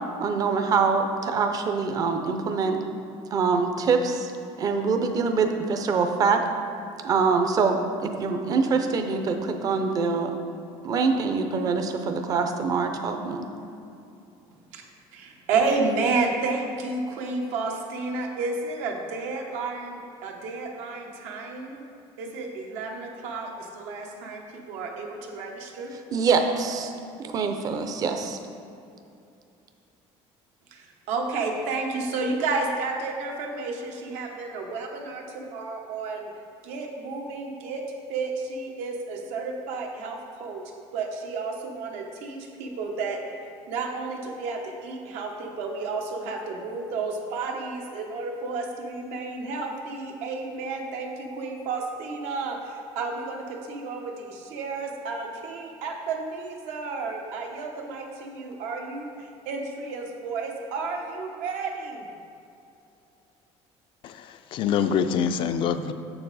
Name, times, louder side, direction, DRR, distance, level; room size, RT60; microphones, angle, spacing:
voice 1, 0.2-2.8 3.3-4.3 4.6-6.4 7.0-10.3 10.8-13.5 26.1-26.9 27.2-28.4, right 5 dB, 30° right, 5 dB, 0.5 m, -24 dB
voice 2, 15.1-21.8 22.2-25.9 30.7-36.3 36.6-37.8 38.1-40.6 40.9-43.2 43.7-62.1, right 3 dB, 80° right, 1 dB, 1.1 m, -31 dB
voice 3, 64.0-65.9, left 7 dB, 45° left, 10 dB, 0.3 m, -25 dB
7.0 x 6.9 x 4.1 m, 2.6 s
cardioid pair, 165°, 12 cm